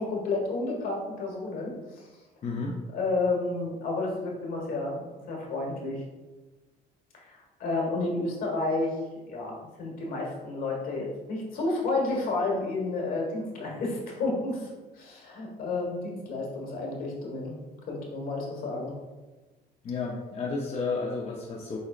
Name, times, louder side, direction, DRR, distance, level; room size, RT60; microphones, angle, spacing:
voice 1, 0.0-2.1 2.9-6.0 7.1-9.0 9.3-17.5 17.9-18.9, left 2 dB, 60° left, -1 dB, 1.5 m, -31 dB
voice 2, 2.4-2.8 19.8-21.8, left 4 dB, 40° left, -1 dB, 0.6 m, -32 dB
4.9 x 4.1 x 2.4 m, 1.2 s
cardioid pair, 110°, 17 cm